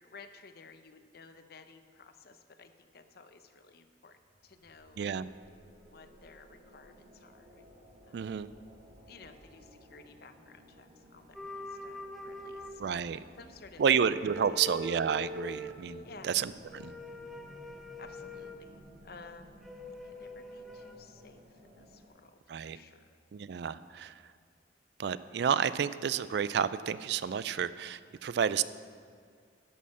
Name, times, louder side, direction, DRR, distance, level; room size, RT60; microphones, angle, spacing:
voice 1, 0.0-4.2 4.4-5.0 5.8-7.6 8.1-8.3 9.1-12.8 13.4-13.9 14.2-14.6 16.0-16.4 18.0-19.6 20.0-23.2, left 4 dB, 55° left, 9 dB, 0.7 m, -55 dB
sound 1, 4.0-22.1, equal, 45° right, 1.5 m, -57 dB
voice 2, 5.0-5.3 8.1-8.5 12.8-13.2 13.8-16.9 22.5-22.8 23.3-24.1 25.0-28.6, right 7 dB, 60° right, 16 dB, 0.3 m, -30 dB
sound 2, 11.3-13.4 13.8-15.8 16.7-18.6 19.6-20.9, left 1 dB, ahead, 0.8 m, -43 dB
11.0 x 6.5 x 7.4 m, 2.1 s
head